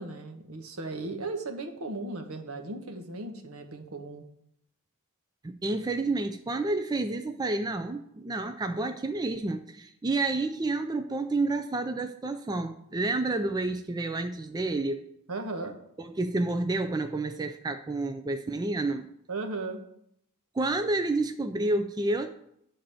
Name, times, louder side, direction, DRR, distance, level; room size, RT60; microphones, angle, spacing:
voice 1, 0.0-4.2 15.3-15.8 19.3-19.8, right 2 dB, 70° right, 5 dB, 1.1 m, -36 dB
voice 2, 5.4-15.0 16.0-19.1 20.5-22.3, right 2 dB, 20° right, 7 dB, 0.4 m, -29 dB
10.0 x 3.9 x 6.9 m, 0.75 s
head